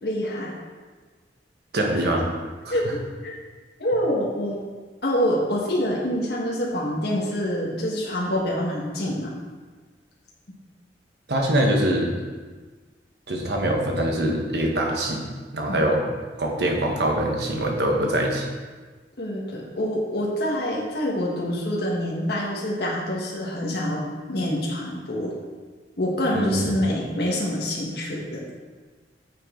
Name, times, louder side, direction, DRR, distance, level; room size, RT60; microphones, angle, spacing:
voice 1, 0.0-0.6 2.7-3.3 3.8-4.6 5.0-9.3 15.7-15.9 19.2-24.0 24.3-25.4 26.0-28.4, equal, 60° left, -4 dB, 1.5 m, -26 dB
voice 2, 1.7-2.3 2.6-2.7 11.3-12.1 13.3-15.2 15.5-16.1 16.4-18.5 26.3-26.7, right 1 dB, 65° right, 1 dB, 1.3 m, -23 dB
9.2 x 6.3 x 3.8 m, 1.4 s
head